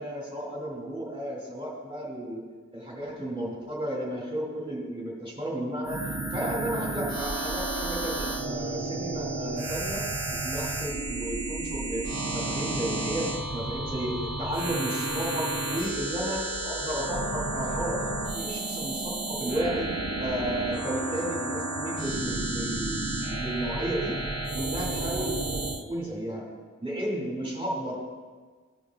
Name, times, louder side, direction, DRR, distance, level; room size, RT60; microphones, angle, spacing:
voice 1, 0.0-2.4 2.7-6.0 6.3-10.0 10.3-19.9 20.2-24.2 24.5-26.5 26.8-28.0, right 1 dB, 15° right, -4 dB, 2.5 m, -33 dB
sound 1, 5.8-25.8, right 2 dB, 55° right, 0.7 m, -32 dB
15.0 x 5.2 x 2.4 m, 1.5 s
wide cardioid pair, 45°, 32 cm